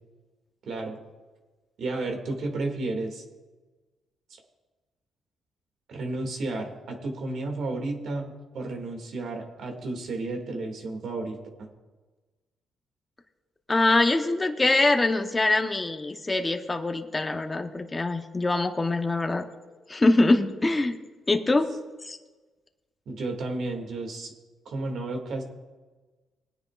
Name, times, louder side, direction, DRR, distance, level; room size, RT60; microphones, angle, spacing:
voice 1, 0.6-1.0 1.8-3.2 5.9-11.7 23.1-24.3 24.7-25.4, right 2 dB, 65° right, 3 dB, 2.2 m, -32 dB
voice 2, 13.7-19.4 19.9-21.0 21.3-21.7 22.0-22.2, left 2 dB, 20° left, 5 dB, 0.9 m, -23 dB
21.0 x 9.7 x 2.5 m, 1.3 s
cardioid pair, 90°, 0 cm